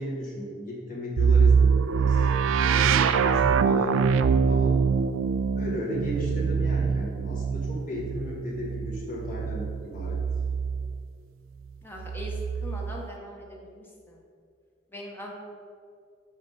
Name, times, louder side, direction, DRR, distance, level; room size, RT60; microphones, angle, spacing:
voice 1, 0.0-2.3 2.6-4.8 5.5-10.2, equal, 45° left, -4 dB, 1.0 m, -35 dB
sound 1, 1.2-11.0 12.0-13.0, right 6 dB, 80° right, 0.3 m, -24 dB
voice 2, 11.8-12.3 12.6-13.8 14.9-15.3, left 1 dB, 10° left, -2 dB, 0.7 m, -40 dB
5.5 x 5.1 x 5.3 m, 2.3 s
head